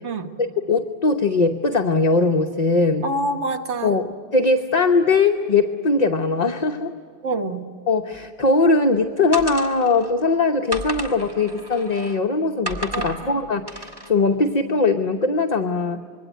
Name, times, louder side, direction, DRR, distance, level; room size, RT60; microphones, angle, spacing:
voice 1, 0.7-3.0 3.8-6.9 7.9-16.0, left 3 dB, 40° left, 4 dB, 1.0 m, -20 dB
voice 2, 3.0-4.0 7.2-7.7 12.9-13.4, right 2 dB, 85° right, 5 dB, 1.7 m, -27 dB
sound 1, 9.3-10.1 10.7-12.2 12.7-13.2 13.7-14.1, right 1 dB, 20° right, 2.5 m, -32 dB
26.0 x 22.5 x 9.2 m, 2.2 s
omnidirectional pair, 1.1 m